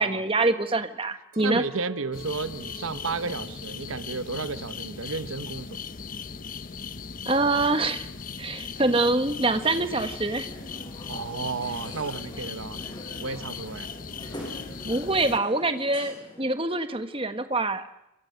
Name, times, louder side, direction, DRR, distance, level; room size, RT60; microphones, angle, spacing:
voice 1, 0.0-1.6 7.2-8.1 8.4-10.5 14.8-17.9, right 2 dB, 25° right, 1.5 m, -25 dB
Chink clink, 1.3-5.7 6.0-6.8, right 3 dB, 40° right, 3.9 m, -48 dB
voice 2, 1.4-5.7 11.1-12.8 13.2-13.9, right 4 dB, 85° right, 1.0 m, -32 dB
sound 1, 2.1-15.4, left 5 dB, 40° left, 0.9 m, -38 dB
sound 2, 9.3-16.5, left 1 dB, 20° left, 7.6 m, -44 dB
28.0 x 23.0 x 6.6 m
head